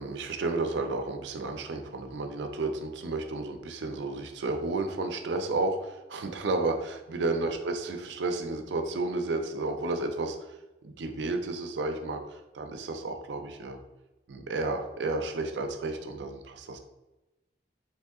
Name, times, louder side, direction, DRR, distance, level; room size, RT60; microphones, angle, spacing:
voice 1, 0.0-10.5 10.8-13.8 14.3-16.8, right 3 dB, 85° right, 5 dB, 0.5 m, -32 dB
2.9 x 2.7 x 3.5 m, 1.1 s
head